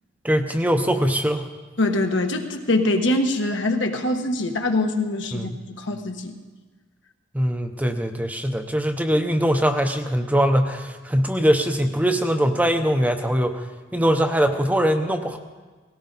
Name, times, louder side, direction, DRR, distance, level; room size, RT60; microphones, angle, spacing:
voice 1, 0.2-1.5 5.3-5.6 7.3-13.7 13.9-15.4, equal, 10° right, 5 dB, 0.8 m, -22 dB
voice 2, 1.8-5.5 5.8-6.3, left 2 dB, 70° left, 4 dB, 1.3 m, -23 dB
18.5 x 17.0 x 4.1 m, 1.3 s
head